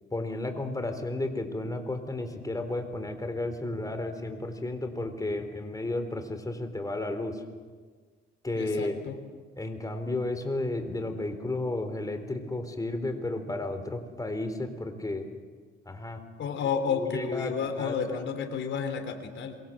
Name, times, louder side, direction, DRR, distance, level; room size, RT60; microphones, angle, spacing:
voice 1, 0.1-7.4 8.4-9.0 9.6-15.3 15.9-16.2 16.9-18.2, left 2 dB, 15° left, 7 dB, 4.0 m, -33 dB
voice 2, 8.5-9.2 16.4-19.6, left 6 dB, 70° left, 6 dB, 3.8 m, -31 dB
27.0 x 24.0 x 7.7 m, 1.5 s
cardioid pair, 90°, 20 cm